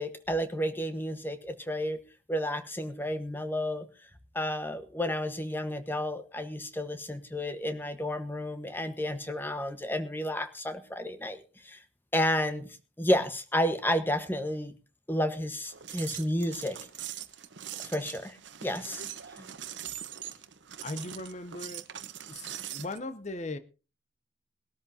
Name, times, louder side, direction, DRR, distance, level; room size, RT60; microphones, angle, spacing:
voice 1, 0.0-2.0 2.3-3.9 4.3-11.8 12.1-12.7 13.0-14.7 15.1-16.8 17.8-19.0, left 1 dB, 10° left, 1.2 m, -31 dB
sound 1, 15.7-23.0, right 10 dB, 80° right, 1.0 m, -42 dB
voice 2, 20.8-21.9 22.3-23.6, left 2 dB, 40° left, 0.7 m, -38 dB
21.0 x 13.0 x 2.7 m
head